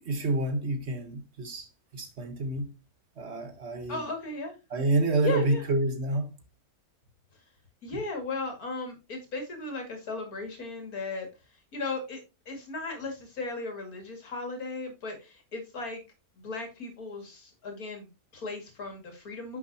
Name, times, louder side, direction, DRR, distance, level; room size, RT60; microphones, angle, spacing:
voice 1, 0.0-2.7 3.2-4.0 4.7-6.3, right 2 dB, 50° right, 1.6 m, -28 dB
voice 2, 3.9-4.5 5.2-5.6 7.8-11.3 11.7-16.0 16.4-19.6, left 3 dB, 75° left, 2.8 m, -36 dB
10.0 x 6.3 x 2.8 m
omnidirectional pair, 1.6 m